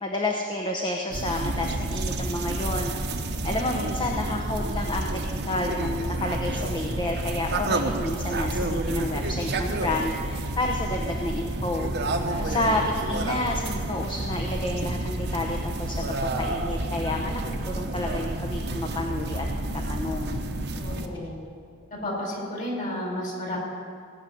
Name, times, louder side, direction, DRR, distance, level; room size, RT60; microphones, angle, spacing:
voice 1, 0.0-2.9 3.4-11.9 12.5-12.8 13.1-16.0 16.2-19.5 19.7-20.4, left 2 dB, 25° left, 1 dB, 0.9 m, -30 dB
sound 1, 1.1-21.1, right 2 dB, 50° right, 1.1 m, -29 dB
voice 2, 3.4-3.9 12.2-12.8 20.8-21.4 21.9-23.6, left 1 dB, 40° left, -2 dB, 4.3 m, -33 dB
18.0 x 6.5 x 9.3 m, 2.3 s
head